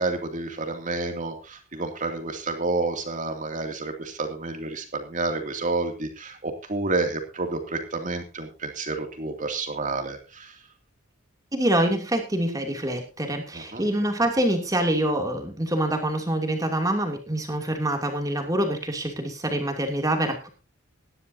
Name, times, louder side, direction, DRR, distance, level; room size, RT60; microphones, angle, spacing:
voice 1, 0.0-10.6 13.5-13.9, right 3 dB, 40° right, 5 dB, 2.7 m, -30 dB
voice 2, 11.5-20.5, right 1 dB, 15° right, 3 dB, 2.8 m, -25 dB
18.5 x 12.0 x 2.8 m, 0.28 s
head